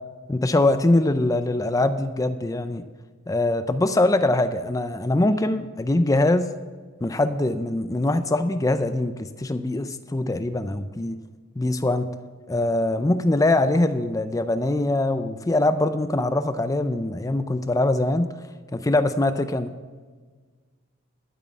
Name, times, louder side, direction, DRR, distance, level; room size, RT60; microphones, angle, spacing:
voice 1, 0.3-2.8 3.3-6.5 7.0-11.2 11.6-12.1 12.5-18.3 18.7-19.7, left 2 dB, 15° left, 10 dB, 0.4 m, -23 dB
12.0 x 6.2 x 7.3 m, 1.5 s
head